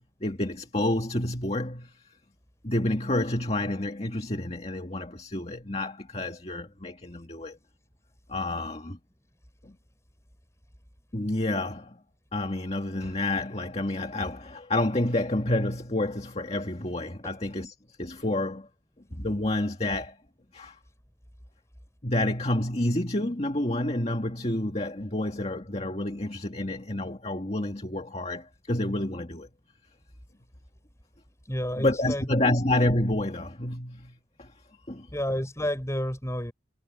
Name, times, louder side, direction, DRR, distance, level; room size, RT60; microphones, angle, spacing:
voice 1, 0.0-2.0 2.6-7.6 8.3-9.0 9.6-9.8 11.1-12.0 12.3-18.7 19.1-20.2 20.5-20.8 22.0-29.5 31.8-34.5 34.9-35.1, left 1 dB, 35° left, 2.0 m, -29 dB
voice 2, 31.4-32.5 35.1-36.5, equal, 15° left, 6.3 m, -31 dB
head